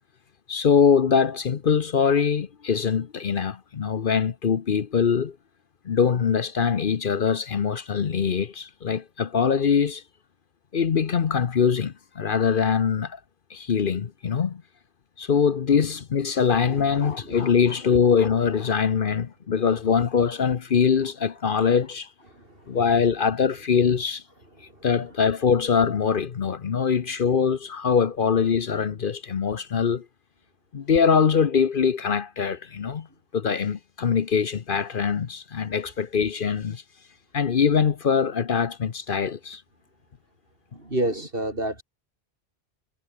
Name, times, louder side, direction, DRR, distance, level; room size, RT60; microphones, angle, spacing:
voice 1, 0.5-5.4 5.9-10.0 10.7-13.2 13.5-14.6 15.2-22.1 22.7-24.2 24.8-30.0 30.7-33.1 33.3-36.8 37.3-39.6, left 6 dB, 55° left, 1.0 m, -23 dB
voice 2, 16.7-17.6 17.9-18.0 22.3-22.8 24.6-24.9 40.7-41.8, right 1 dB, 60° right, 7.4 m, -31 dB
omnidirectional pair, 1.1 m